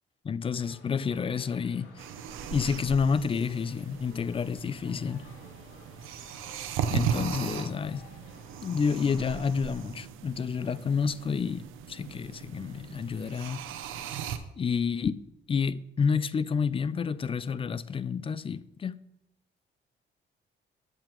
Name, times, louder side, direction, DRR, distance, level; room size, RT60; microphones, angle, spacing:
voice 1, 0.2-2.0 2.5-5.3 6.9-8.0 8.6-13.6 14.6-15.2 15.5-19.0, left 6 dB, 25° left, 0.4 m, -29 dB
sound 1, 0.6-9.8, left 2 dB, 70° left, 2.2 m, -54 dB
sound 2, 2.0-14.4, right 8 dB, 90° right, 0.6 m, -37 dB
8.8 x 7.5 x 3.0 m
cardioid pair, 90°, 20 cm